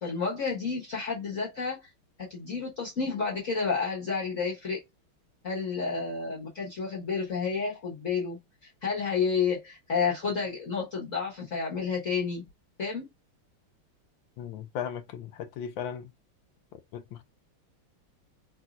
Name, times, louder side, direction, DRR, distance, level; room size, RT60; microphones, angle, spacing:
voice 1, 0.0-1.8 2.2-4.8 5.4-8.4 8.8-12.4 12.8-13.1, left 5 dB, 40° left, 1.4 m, -30 dB
voice 2, 14.4-16.1 16.9-17.2, left 8 dB, 75° left, 1.3 m, -37 dB
4.0 x 2.6 x 2.3 m
omnidirectional pair, 2.4 m